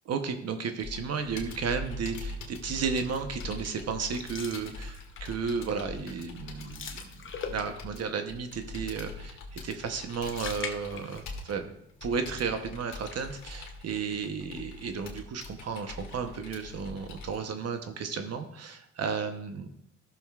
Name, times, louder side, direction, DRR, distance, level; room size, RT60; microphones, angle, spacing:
voice 1, 0.1-7.2 7.5-11.7 12.0-19.7, right 5 dB, 55° right, 7 dB, 0.9 m, -33 dB
Computer keyboard, 0.8-17.4, left 3 dB, 70° left, 2.0 m, -43 dB
sound 1, 4.0-5.4 5.8-6.0 6.3-8.0 9.8-11.6 11.9-12.0 12.9-13.7, left 6 dB, 40° left, 0.9 m, -42 dB
14.0 x 6.8 x 2.4 m, 0.76 s
cardioid pair, 90°, 30 cm